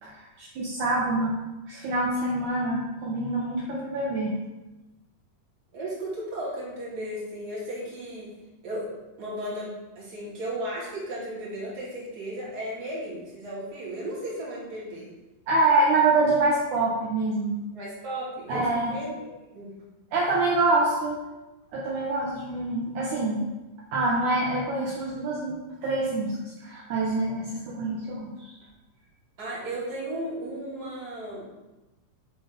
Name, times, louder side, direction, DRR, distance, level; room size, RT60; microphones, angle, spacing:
voice 1, 0.0-1.4 1.7-4.3 15.5-17.6 18.5-19.0 20.1-21.2 21.7-23.4 23.9-28.5, right 2 dB, 70° right, -4 dB, 2.2 m, -26 dB
voice 2, 5.7-8.3 8.6-8.9 9.2-15.1 17.7-19.7 29.4-31.4, right 1 dB, 30° right, -6 dB, 2.5 m, -35 dB
9.4 x 3.8 x 5.1 m, 1.1 s
omnidirectional pair, 4.1 m